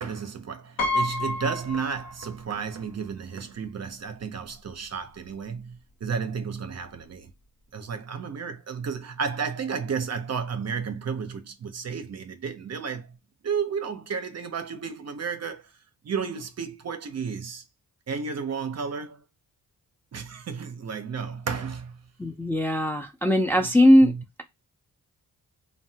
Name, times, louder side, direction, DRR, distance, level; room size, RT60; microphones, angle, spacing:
voice 1, 0.0-7.3 7.7-13.2 13.4-15.7 16.0-17.6 18.1-19.2 20.1-22.0 23.6-23.7 24.0-24.2, right 6 dB, 45° right, 0.5 m, -32 dB
Piano, 0.8-2.6 2.9-3.0 4.2-4.3 4.6-4.8, left 2 dB, 70° left, 0.8 m, -29 dB
voice 2, 22.2-24.1, equal, 5° left, 0.5 m, -19 dB
3.1 x 2.2 x 2.7 m
cardioid pair, 70°, 36 cm